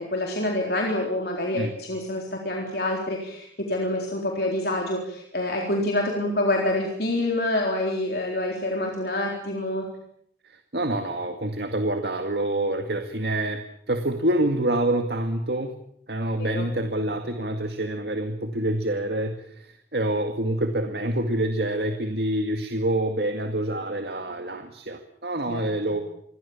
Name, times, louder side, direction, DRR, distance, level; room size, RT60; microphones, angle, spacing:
voice 1, 0.0-9.8 16.4-16.7 25.5-25.6, left 1 dB, 55° left, 0 dB, 4.0 m, -27 dB
voice 2, 10.5-13.6 13.9-15.7 16.1-26.0, right 1 dB, 65° right, 6 dB, 2.1 m, -27 dB
28.0 x 22.0 x 7.2 m, 0.69 s
head